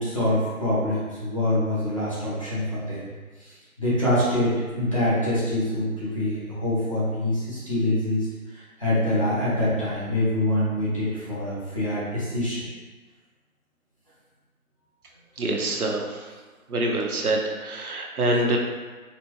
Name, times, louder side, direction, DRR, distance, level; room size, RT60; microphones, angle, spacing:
voice 1, 0.0-3.0 3.4-8.3 8.5-12.6, left 1 dB, 25° left, -10 dB, 0.8 m, -25 dB
voice 2, 15.4-16.2 16.7-18.6, right 1 dB, 90° right, 0 dB, 0.9 m, -25 dB
4.2 x 2.7 x 3.0 m, 1.3 s
figure-of-eight pair, 165°, 43 cm